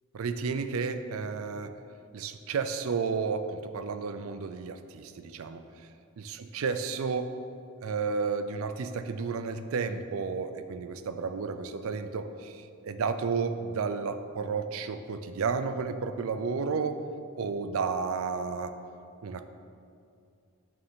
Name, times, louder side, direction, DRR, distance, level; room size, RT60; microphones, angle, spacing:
voice 1, 0.1-1.7 2.1-5.6 6.2-7.3 7.8-17.0 17.4-18.7 19.2-19.5, right 5 dB, 70° right, 10 dB, 0.4 m, -32 dB
6.6 x 6.5 x 3.7 m, 2.5 s
head